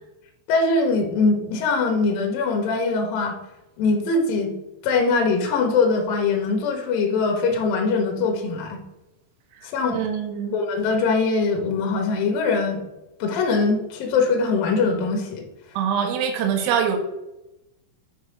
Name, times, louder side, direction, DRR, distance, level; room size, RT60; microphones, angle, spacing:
voice 1, 0.5-3.4 3.8-4.5 4.8-8.8 9.7-10.0 10.5-12.8 13.2-15.4, left 4 dB, 70° left, 2 dB, 2.3 m, -22 dB
voice 2, 9.9-10.5 15.8-17.0, right 8 dB, 90° right, 4 dB, 3.9 m, -23 dB
9.1 x 4.1 x 5.2 m, 0.93 s
omnidirectional pair, 5.8 m